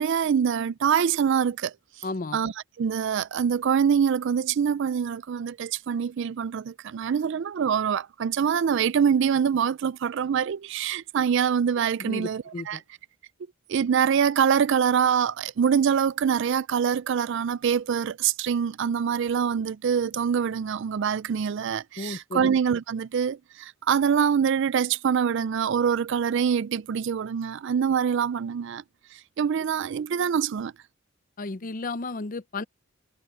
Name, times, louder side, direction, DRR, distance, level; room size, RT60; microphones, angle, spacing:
voice 1, 0.0-1.7 2.3-2.5 2.8-12.8 13.7-28.8 29.4-30.7, right 7 dB, 55° right, 0.3 m, -24 dB
voice 2, 2.0-2.4 12.0-12.8 22.0-22.5 31.4-32.6, left 3 dB, 40° left, 0.6 m, -33 dB
head